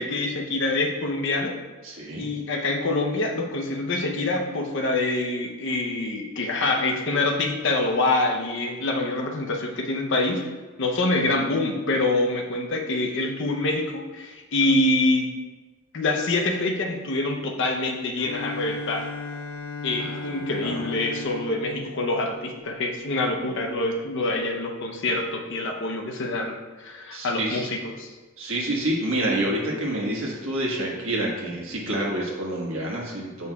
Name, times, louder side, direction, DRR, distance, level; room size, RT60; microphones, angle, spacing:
voice 1, 0.0-1.6 2.2-10.5 10.8-15.3 15.9-19.1 19.8-28.1, left 2 dB, 60° left, 3 dB, 0.7 m, -25 dB
voice 2, 1.8-2.3 20.0-20.2 20.6-20.8 27.1-27.7 28.4-33.5, right 1 dB, 70° right, -2 dB, 1.4 m, -28 dB
Bowed string instrument, 18.2-22.9, left 3 dB, 90° left, 1.0 m, -36 dB
8.0 x 5.3 x 2.3 m, 1.3 s
head